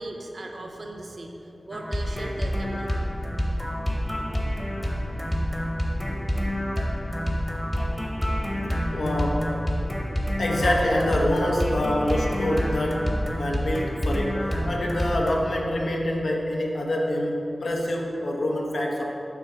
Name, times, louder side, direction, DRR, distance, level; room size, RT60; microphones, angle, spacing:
voice 1, 0.0-3.0, right 1 dB, 60° right, 2 dB, 0.6 m, -38 dB
sound 1, 1.7-15.4, equal, 10° left, 0.9 m, -28 dB
voice 2, 8.9-9.5 10.4-13.1 13.4-14.4 14.6-19.0, left 1 dB, 75° left, 0 dB, 0.8 m, -26 dB
5.9 x 3.7 x 6.0 m, 3.0 s
wide cardioid pair, 80°, 0 cm